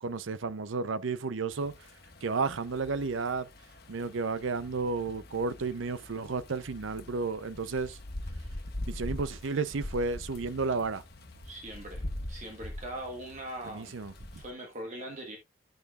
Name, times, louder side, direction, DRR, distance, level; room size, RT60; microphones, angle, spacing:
voice 1, 0.0-1.7 2.2-3.5 3.9-8.0 8.9-11.0 13.7-14.4, right 4 dB, 65° right, 0.6 m, -32 dB
sound 1, 1.5-14.5, left 1 dB, 50° left, 1.3 m, -43 dB
voice 2, 11.4-12.0 12.3-13.9 14.3-15.4, right 1 dB, 35° right, 1.3 m, -41 dB
10.5 x 6.8 x 2.4 m
head